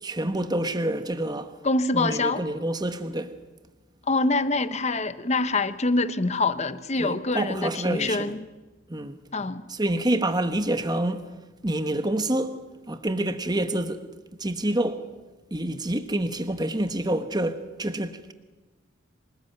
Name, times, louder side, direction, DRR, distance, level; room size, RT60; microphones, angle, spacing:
voice 1, 0.0-1.6 1.9-3.4 7.0-8.4 8.9-9.2 9.7-11.3 11.6-12.6 12.9-14.1 14.4-15.1 15.5-18.3, right 1 dB, 20° right, 1.2 m, -27 dB
voice 2, 1.6-2.4 4.1-8.5 9.3-9.6, left 3 dB, 35° left, 1.0 m, -25 dB
26.5 x 19.5 x 9.3 m
head